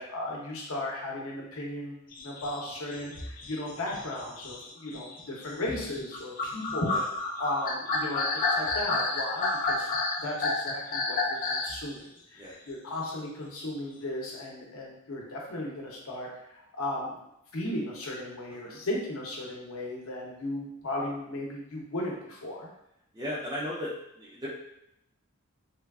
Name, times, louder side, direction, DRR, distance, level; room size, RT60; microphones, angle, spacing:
voice 1, 0.1-7.0 7.2-9.9 10.2-16.3 16.6-17.1 17.5-22.7, left 1 dB, 75° left, -2 dB, 0.8 m, -35 dB
sound 1, 2.1-11.8, left 3 dB, 40° left, 0.4 m, -31 dB
voice 2, 23.1-24.5, left 1 dB, 20° right, -7 dB, 0.4 m, -36 dB
3.3 x 2.3 x 2.3 m, 0.81 s
head